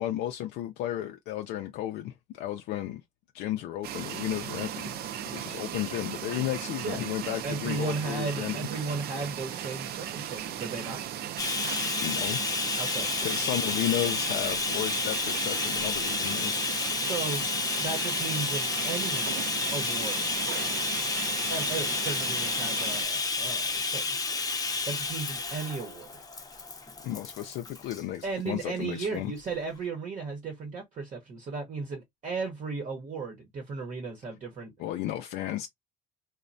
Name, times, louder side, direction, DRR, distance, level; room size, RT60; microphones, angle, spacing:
voice 1, 0.0-3.0 3.3-5.0 5.3-8.6 12.0-12.4 13.2-16.7 27.0-29.3 34.8-35.7, left 13 dB, 85° left, 0.4 m, -33 dB
sound 1, 3.8-23.0, right 10 dB, 70° right, 0.4 m, -37 dB
voice 2, 7.4-11.0 12.8-13.1 17.0-17.4 17.8-19.3 19.7-20.3 21.5-24.1 24.8-26.2 28.2-34.7, right 4 dB, 45° right, 0.8 m, -35 dB
Bathtub (filling or washing), 11.4-28.0 28.9-29.1 29.4-29.5, left 4 dB, 20° left, 0.7 m, -31 dB
3.0 x 2.1 x 2.5 m
cardioid pair, 110°, 17 cm